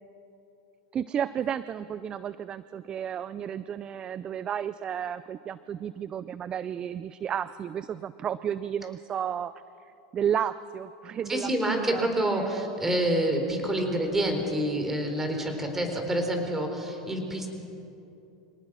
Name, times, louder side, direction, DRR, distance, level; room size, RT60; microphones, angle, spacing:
voice 1, 0.9-9.6 10.1-12.7 15.8-15.9, right 9 dB, 30° right, 16 dB, 0.5 m, -32 dB
voice 2, 11.3-17.5, right 1 dB, 10° right, 4 dB, 4.1 m, -27 dB
26.0 x 18.5 x 6.3 m, 2.9 s
hypercardioid pair, 115°, 3 cm